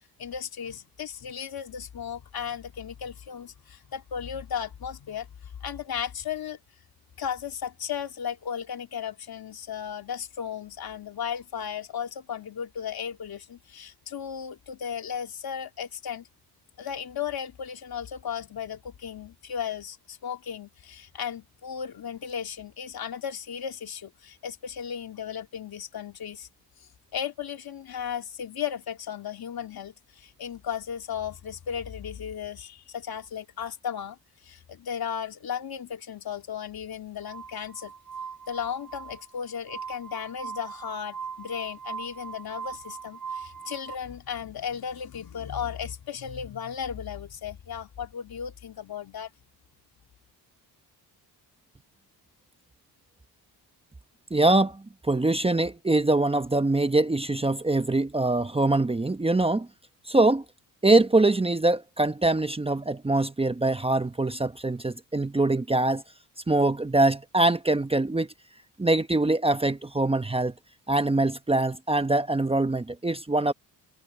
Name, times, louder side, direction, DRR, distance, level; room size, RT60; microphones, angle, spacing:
voice 1, 0.2-6.6 7.2-16.3 16.8-26.5 27.1-34.2 34.4-37.9 38.5-49.3, left 8 dB, 60° left, 2.8 m, -35 dB
Glass, 37.2-44.0, right 6 dB, 50° right, 4.3 m, -40 dB
voice 2, 54.3-59.7 60.1-60.4 60.8-66.0 66.5-68.3 68.8-70.5 70.9-73.5, right 2 dB, 15° right, 1.0 m, -23 dB
cardioid pair, 80°, 41 cm